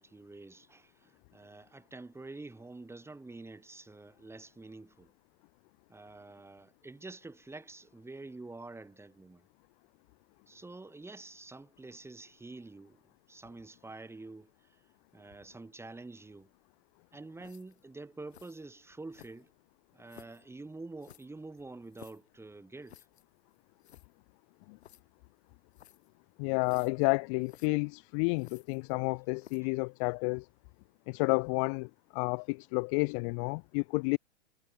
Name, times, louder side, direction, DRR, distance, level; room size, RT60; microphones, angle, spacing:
voice 1, 0.0-5.1 5.9-9.5 10.5-13.0 13.3-14.8 15.1-16.5 17.1-19.5 19.9-23.0, right 3 dB, 5° right, 4.2 m, -47 dB
sound 1, 17.4-17.8 18.3-18.6 19.1-19.6 20.1-20.4 21.0-22.3 22.9-23.2 23.6-23.7 23.8-24.1 24.8-25.0 25.7-26.1 26.6-27.1 27.4-27.7 28.4-29.1 29.4-29.7, left 11 dB, 60° left, 4.1 m, -56 dB
voice 2, 26.4-30.5 31.1-34.2, left 36 dB, 30° left, 0.5 m, -31 dB
figure-of-eight pair, 100°, 36 cm